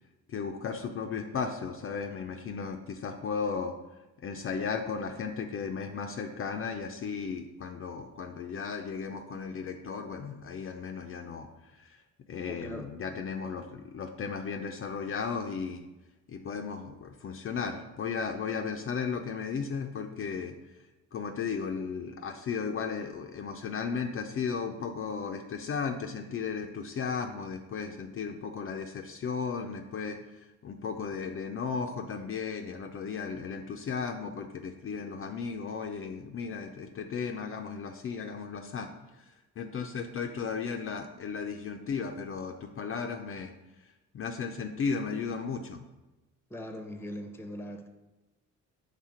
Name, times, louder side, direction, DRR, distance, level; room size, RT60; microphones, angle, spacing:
voice 1, 0.3-3.7 4.2-12.0 12.3-15.8 16.3-20.6 21.1-38.9 39.2-39.3 39.6-43.5 44.1-45.8, left 5 dB, 45° left, 4 dB, 0.5 m, -35 dB
voice 2, 12.5-12.9 46.5-47.9, equal, 10° left, 6 dB, 0.7 m, -40 dB
5.7 x 3.4 x 4.9 m, 1.0 s
cardioid pair, 90°, 30 cm